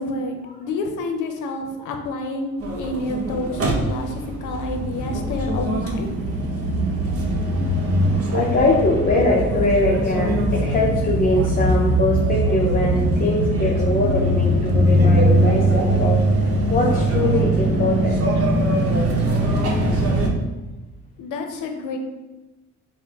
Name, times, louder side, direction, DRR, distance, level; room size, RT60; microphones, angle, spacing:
voice 1, 0.0-6.1 21.2-22.0, left 2 dB, 90° left, 4 dB, 0.6 m, -29 dB
sound 1, 2.6-20.3, right 1 dB, 50° right, 0.8 m, -21 dB
voice 2, 6.2-6.9 8.3-18.4, left 2 dB, 30° left, -4 dB, 0.6 m, -23 dB
5.6 x 2.1 x 2.8 m, 1.1 s
cardioid pair, 90°, 30 cm